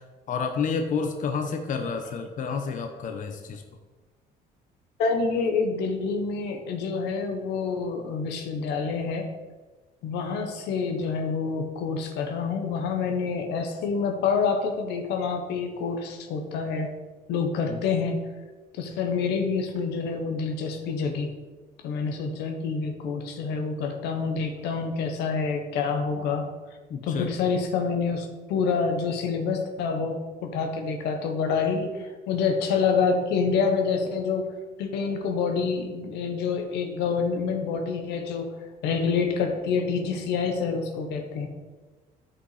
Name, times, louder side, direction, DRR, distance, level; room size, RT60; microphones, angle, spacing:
voice 1, 0.3-3.6 17.7-17.8 26.9-27.3, left 5 dB, 50° left, 5 dB, 0.9 m, -29 dB
voice 2, 5.0-9.3 10.0-16.9 17.3-18.2 18.7-21.3 21.8-26.5 27.0-34.4 34.8-38.5 38.8-41.5, left 5 dB, 85° left, 4 dB, 1.3 m, -27 dB
10.0 x 5.5 x 4.9 m, 1.3 s
cardioid pair, 110°, 17 cm